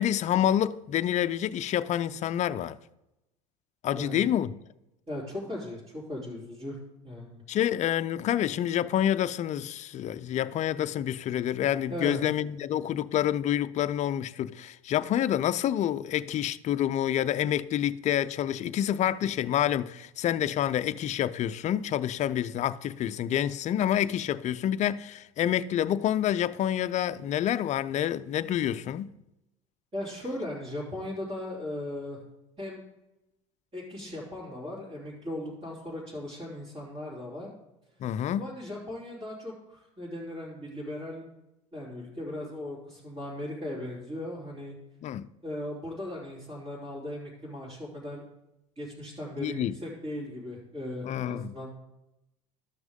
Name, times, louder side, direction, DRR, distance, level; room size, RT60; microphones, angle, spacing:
voice 1, 0.0-2.8 3.8-4.5 7.5-29.1 38.0-38.5 45.0-45.3 49.4-49.8 51.0-51.5, left 11 dB, 40° left, 0.5 m, -28 dB
voice 2, 5.1-6.8 7.0-7.4 11.9-12.2 29.9-32.2 32.6-32.8 33.7-37.5 38.4-41.2 41.7-44.8 45.4-48.2 48.8-51.7, left 1 dB, 30° right, 3.7 m, -37 dB
13.0 x 6.1 x 3.7 m
hypercardioid pair, 80°, 18 cm